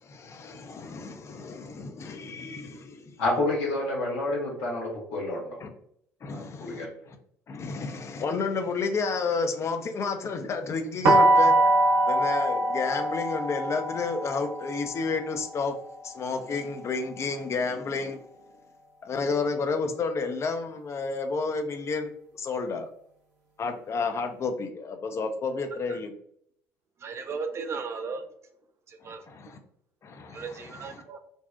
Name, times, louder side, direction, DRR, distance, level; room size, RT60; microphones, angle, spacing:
voice 1, 0.0-3.2 5.6-5.7 6.2-7.2 7.5-11.5 12.1-15.7 16.0-18.2 19.0-22.9 23.6-26.1 29.0-29.6 30.0-31.0, left 4 dB, 35° left, 6 dB, 0.4 m, -31 dB
voice 2, 3.2-5.4 6.3-6.9, left 2 dB, 65° left, -2 dB, 0.9 m, -29 dB
sound 1, 11.0-16.9, right 1 dB, 70° right, 0.6 m, -24 dB
voice 3, 27.0-28.2 28.9-29.3 30.3-31.2, right 5 dB, 35° right, 6 dB, 0.4 m, -36 dB
2.7 x 2.0 x 2.3 m, 0.69 s
hypercardioid pair, 60°, 8 cm